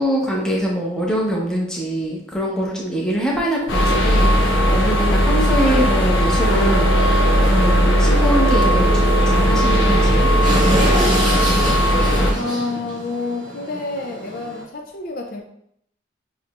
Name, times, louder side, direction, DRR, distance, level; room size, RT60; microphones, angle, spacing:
voice 1, 0.0-10.3, equal, 5° left, -4 dB, 0.8 m, -23 dB
sound 1, 3.7-12.3, equal, 80° left, 0.9 m, -17 dB
sound 2, 5.7-5.8 6.0-6.1 6.4-6.6 8.3-8.4 8.6-8.7 9.3-14.6, right 1 dB, 25° right, 1.1 m, -26 dB
sound 3, 6.5-11.5, right 7 dB, 80° right, 0.3 m, -27 dB
voice 2, 12.3-15.4, left 3 dB, 45° left, 2 dB, 0.4 m, -28 dB
6.6 x 2.9 x 2.4 m, 0.72 s
head